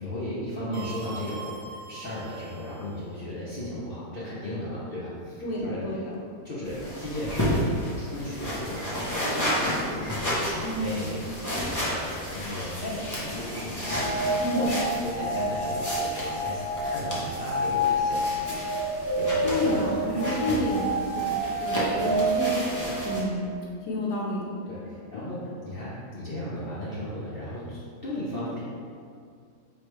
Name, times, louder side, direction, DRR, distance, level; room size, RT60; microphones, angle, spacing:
voice 1, 0.0-6.1 6.4-18.4 19.2-20.5 22.0-22.3 24.7-28.6, left 1 dB, 50° left, -9 dB, 0.7 m, -36 dB
sound 1, 0.7-3.1, right 5 dB, 85° right, 1.3 m, -42 dB
voice 2, 5.4-6.0 10.6-10.9 14.4-14.6 19.4-20.9 21.1-21.3 21.6-22.5 23.0-23.4 23.9-24.5 25.1-25.3, equal, 75° left, -4 dB, 1.4 m, -29 dB
sound 2, 6.6-23.2, equal, 30° left, 0.3 m, -32 dB
sound 3, 13.8-23.6, right 1 dB, 10° right, 0.9 m, -29 dB
4.8 x 3.2 x 3.1 m, 2.2 s
omnidirectional pair, 1.8 m